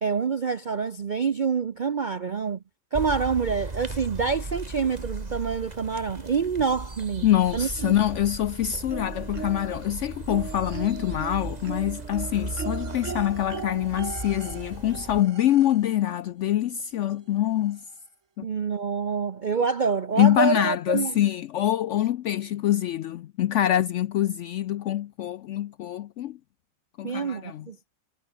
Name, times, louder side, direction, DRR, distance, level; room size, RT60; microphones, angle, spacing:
voice 1, 0.0-2.6 2.9-7.9 18.4-21.1 27.0-27.8, right 5 dB, 80° right, 0.4 m, -27 dB
sound 1, 2.9-15.2, right 2 dB, 25° right, 2.4 m, -37 dB
voice 2, 7.2-17.8 18.4-18.5 20.2-26.4 27.0-27.7, left 12 dB, 85° left, 0.6 m, -25 dB
sound 2, 8.9-9.8 10.3-16.0 17.2-17.3 17.6-17.7, right 6 dB, 45° right, 1.8 m, -39 dB
omnidirectional pair, 1.8 m